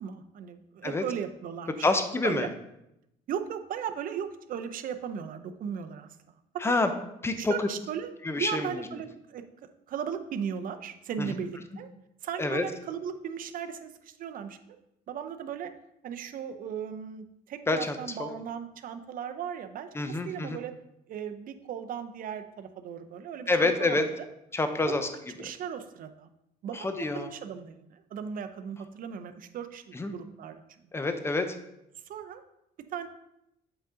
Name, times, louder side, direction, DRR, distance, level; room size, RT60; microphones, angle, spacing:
voice 1, 0.0-1.9 2.2-2.5 3.3-6.1 6.6-6.7 7.4-11.9 12.2-14.6 15.1-15.7 16.0-20.7 21.1-24.3 24.9-25.1 25.4-26.3 26.6-30.9 31.9-32.4 32.9-33.1, right 8 dB, 55° right, 8 dB, 0.6 m, -37 dB
voice 2, 1.8-2.5 6.6-6.9 7.2-7.7 8.2-8.7 11.2-11.3 12.4-12.7 17.7-18.3 19.9-20.6 23.5-24.1 24.5-25.1 25.4-25.5 26.7-27.3 29.9-30.1 30.9-31.6, left 2 dB, 15° left, 8 dB, 0.6 m, -27 dB
8.0 x 3.9 x 3.7 m, 0.83 s
cardioid pair, 110°, 17 cm